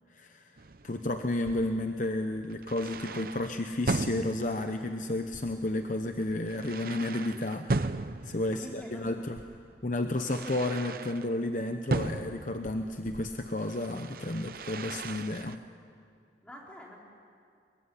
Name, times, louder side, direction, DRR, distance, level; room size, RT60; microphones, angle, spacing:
voice 1, 0.1-0.6 0.8-9.4 9.8-15.6, left 2 dB, 45° left, 6 dB, 0.9 m, -32 dB
sound 1, 0.6-11.3 11.9-15.6, right 3 dB, 50° right, 0.7 m, -37 dB
voice 2, 8.3-9.3 16.4-17.0, left 1 dB, 5° left, -3 dB, 4.1 m, -47 dB
23.0 x 22.0 x 9.9 m, 2.3 s
head